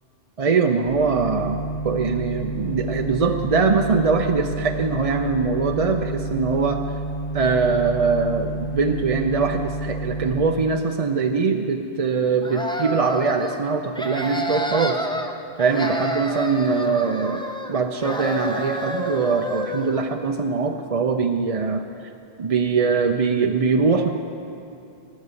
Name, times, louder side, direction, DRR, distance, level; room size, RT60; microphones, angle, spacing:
voice 1, 0.4-6.8 7.3-15.1 15.6-21.8 22.4-24.1, right 4 dB, 40° right, 4 dB, 0.6 m, -22 dB
sound 1, 0.8-10.5, right 2 dB, 40° left, 2.8 m, -30 dB
sound 2, 12.4-13.6 13.9-15.3 15.6-17.7 18.0-20.0, right 1 dB, 5° left, 0.9 m, -29 dB
17.5 x 7.4 x 9.6 m, 2.7 s
omnidirectional pair, 1.1 m